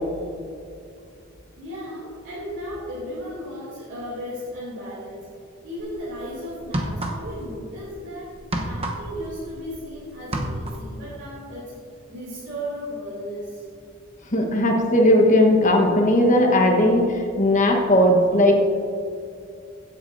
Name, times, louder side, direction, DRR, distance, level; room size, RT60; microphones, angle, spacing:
voice 1, 1.6-5.3 5.6-8.3 8.6-11.7 12.1-13.7, equal, 55° right, -9 dB, 2.7 m, -35 dB
sound 1, 5.8-6.0 6.6-7.5 7.8-9.9 10.2-10.9, right 1 dB, 25° right, 0.9 m, -29 dB
voice 2, 14.3-18.5, left 1 dB, 35° left, 1 dB, 1.2 m, -17 dB
16.0 x 8.4 x 2.7 m, 2.4 s
head